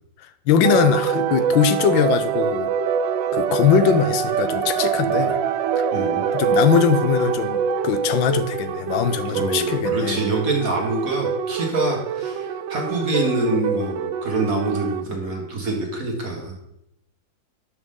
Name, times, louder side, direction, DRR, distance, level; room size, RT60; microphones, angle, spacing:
voice 1, 0.5-2.7 3.3-5.4 6.3-10.2, left 8 dB, 90° left, 11 dB, 1.5 m, -21 dB
sound 1, 0.6-15.0, right 7 dB, 80° right, 1.3 m, -24 dB
voice 2, 5.9-6.2 9.3-16.5, right 2 dB, 50° right, 1 dB, 1.8 m, -25 dB
12.0 x 6.5 x 3.7 m, 0.80 s
omnidirectional pair, 2.0 m